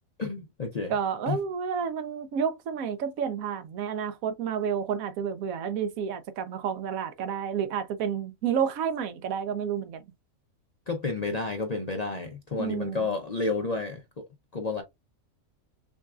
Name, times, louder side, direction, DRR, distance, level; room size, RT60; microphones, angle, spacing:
voice 1, 0.2-0.9 1.3-1.4 10.9-14.2 14.5-14.8, left 3 dB, 50° left, 0.5 m, -31 dB
voice 2, 0.9-10.0 12.6-13.1, right 7 dB, 80° right, 1.0 m, -30 dB
6.2 x 2.3 x 2.4 m
omnidirectional pair, 1.5 m